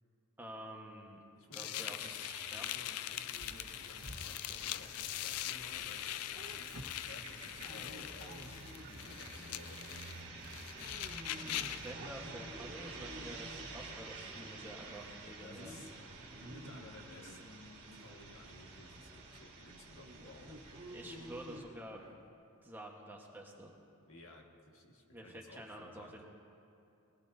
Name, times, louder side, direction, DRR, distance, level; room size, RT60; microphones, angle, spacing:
voice 1, 0.4-1.2 1.5-2.1 2.5-2.7 11.4-15.7 20.5-20.6 20.9-22.1 22.6-23.7 25.1-26.2, right 1 dB, 10° right, -1 dB, 1.3 m, -49 dB
voice 2, 1.3-2.0 2.6-6.3 7.1-8.6 8.9-9.8 15.4-16.1 16.4-20.5 24.1-26.2, left 2 dB, 65° left, 0 dB, 1.7 m, -55 dB
sound 1, 1.5-11.9, left 13 dB, 85° left, 0.4 m, -42 dB
sound 2, 2.0-21.6, right 3 dB, 50° right, 2.7 m, -50 dB
Dog, 3.4-5.7 6.0-9.3 9.7-10.0 10.8-13.9 14.3-15.0 15.4-15.8 16.2-17.4 17.9-18.1 18.7-18.8 19.2-19.3 19.9-22.2, equal, 75° right, 1.4 m, -52 dB
21.0 x 18.0 x 2.7 m, 2.7 s
head